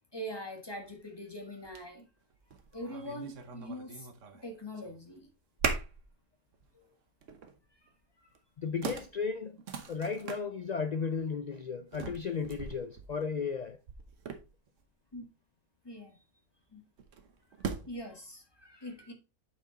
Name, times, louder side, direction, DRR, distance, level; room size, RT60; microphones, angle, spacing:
voice 1, 0.1-2.0 2.7-4.1 4.4-5.3 6.7-6.8 15.1-15.2 15.8-16.1 16.7-16.8 17.9-19.1, equal, 20° left, 1.5 m, -42 dB
sound 1, 0.9-1.0 1.6-1.9 2.3-4.5 4.8-5.2 5.6-6.1 6.5-6.7 7.2-7.6 8.4-8.5 8.8-10.4 11.9-14.8 17.0-18.1, right 5 dB, 70° right, 1.3 m, -39 dB
voice 2, 8.6-9.6 9.9-13.8, left 5 dB, 80° left, 0.3 m, -34 dB
8.4 x 4.6 x 3.9 m
omnidirectional pair, 1.4 m